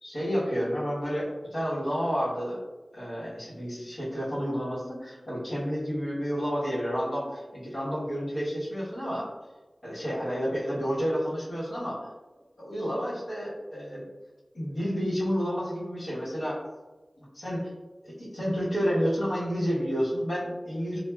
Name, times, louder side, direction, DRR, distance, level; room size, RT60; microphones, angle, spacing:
voice 1, 0.0-2.6 2.9-9.3 9.8-12.1 12.6-14.0 14.5-16.6 17.2-17.6 18.0-21.0, equal, 85° left, -10 dB, 1.1 m, -30 dB
3.2 x 2.2 x 2.2 m, 1.2 s
wide cardioid pair, 55°, 0 cm